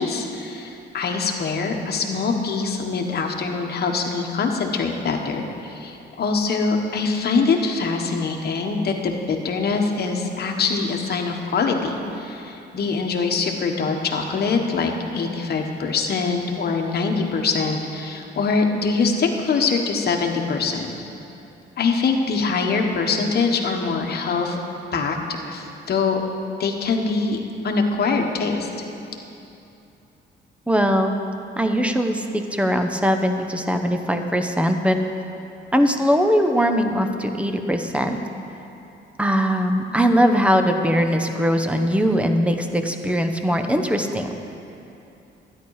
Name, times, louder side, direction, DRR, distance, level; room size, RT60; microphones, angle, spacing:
voice 1, 0.0-20.9 21.8-24.6 24.9-25.2 25.5-26.2 26.6-27.4 27.6-28.7, left 4 dB, 55° left, 2 dB, 1.3 m, -23 dB
voice 2, 30.7-31.2 31.6-35.0 35.7-38.2 39.2-44.3, equal, 5° right, 6 dB, 0.9 m, -20 dB
12.5 x 10.0 x 4.9 m, 2.8 s
cardioid pair, 90°, 20 cm